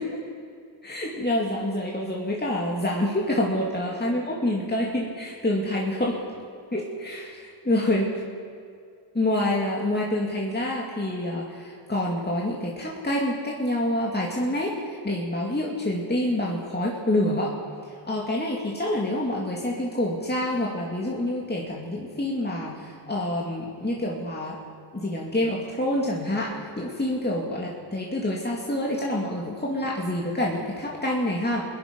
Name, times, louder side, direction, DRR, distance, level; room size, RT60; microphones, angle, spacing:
voice 1, 0.8-6.2 6.7-8.1 9.1-17.5 17.9-24.6 24.9-31.7, left 1 dB, 20° left, -3 dB, 2.5 m, -27 dB
21.5 x 10.5 x 5.3 m, 2.3 s
cardioid pair, 55°, 47 cm